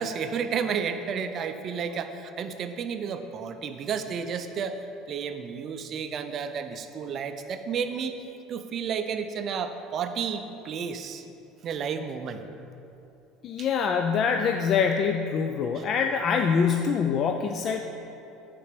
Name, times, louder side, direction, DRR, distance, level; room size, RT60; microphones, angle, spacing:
voice 1, 0.0-4.8 5.1-8.2 8.5-11.2 11.6-12.4 13.6-13.7 15.7-15.9, right 6 dB, 40° right, 9 dB, 0.4 m, -32 dB
voice 2, 13.4-17.8, left 6 dB, 40° left, 4 dB, 0.3 m, -25 dB
8.6 x 4.2 x 5.1 m, 2.9 s
cardioid pair, 145°, 0 cm